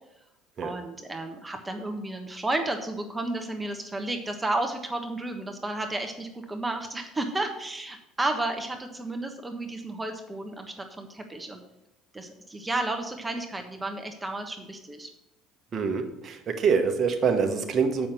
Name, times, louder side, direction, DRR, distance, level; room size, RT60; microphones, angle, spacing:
voice 1, 0.6-11.6 12.1-15.1, right 2 dB, 15° right, 4 dB, 1.3 m, -32 dB
voice 2, 15.7-18.1, right 5 dB, 45° right, 4 dB, 1.2 m, -25 dB
7.1 x 6.0 x 6.8 m, 0.92 s
hypercardioid pair, 70°, 0 cm